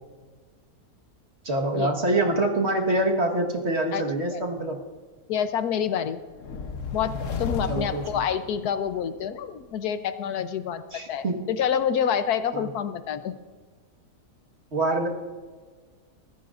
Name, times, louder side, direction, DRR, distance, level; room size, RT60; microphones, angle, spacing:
voice 1, 1.4-4.8 7.7-8.0 10.9-11.5 12.5-12.6 14.7-15.1, right 1 dB, 45° right, 1 dB, 1.7 m, -25 dB
voice 2, 4.3-4.7 5.3-6.2 6.9-10.8 11.1-13.4, left 8 dB, 85° left, 11 dB, 1.3 m, -27 dB
sound 1, 6.3-9.1, left 4 dB, 60° left, 1.2 m, -33 dB
23.5 x 14.5 x 2.5 m, 1.5 s
omnidirectional pair, 1.6 m